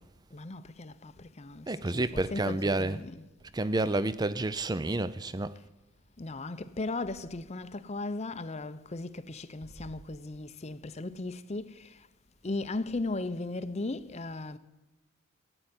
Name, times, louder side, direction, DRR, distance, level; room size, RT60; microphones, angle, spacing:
voice 1, 0.3-3.3 3.9-4.0 6.2-12.1 12.4-14.6, left 2 dB, 30° left, 0.6 m, -37 dB
voice 2, 1.7-3.0 3.5-5.5, right 2 dB, 20° right, 0.5 m, -29 dB
15.5 x 9.0 x 9.8 m
head